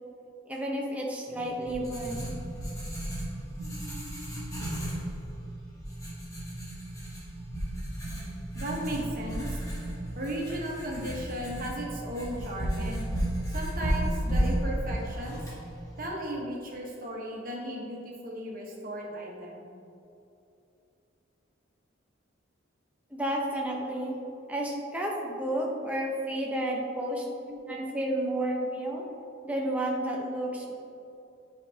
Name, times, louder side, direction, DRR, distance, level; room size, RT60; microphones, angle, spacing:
voice 1, 0.5-2.3 23.1-24.2 24.5-29.0 29.4-30.7, right 1 dB, 5° right, -2 dB, 0.8 m, -31 dB
Writing, 1.3-16.1, right 1 dB, 15° left, 1.7 m, -34 dB
voice 2, 8.5-9.6 10.1-13.0 13.5-15.5 16.0-19.7 25.9-26.1, equal, 45° right, -2 dB, 1.3 m, -36 dB
9.1 x 5.0 x 3.5 m, 2.7 s
head